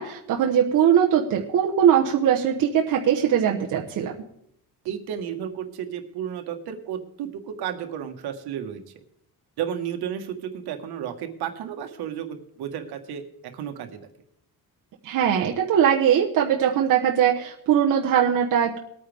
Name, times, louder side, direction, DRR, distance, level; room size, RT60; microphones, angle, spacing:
voice 1, 0.0-4.1 15.0-18.8, right 9 dB, 50° right, 0 dB, 1.2 m, -21 dB
voice 2, 4.8-8.9 9.6-14.0, right 9 dB, 70° right, 6 dB, 1.6 m, -33 dB
21.5 x 9.2 x 3.5 m, 0.75 s
cardioid pair, 175°, 40 cm